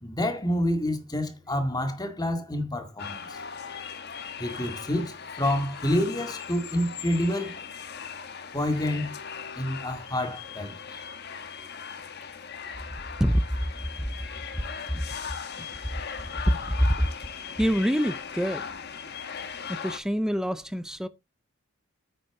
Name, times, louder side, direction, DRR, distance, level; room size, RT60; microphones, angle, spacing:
voice 1, 0.0-3.4 4.4-7.6 8.5-9.1 9.6-11.0, left 1 dB, 20° left, 2.0 m, -28 dB
sound 1, 3.0-20.0, left 6 dB, 50° left, 1.2 m, -39 dB
voice 2, 16.4-17.1 17.6-18.7 19.7-21.1, equal, 5° right, 0.6 m, -25 dB
8.9 x 7.8 x 3.8 m
head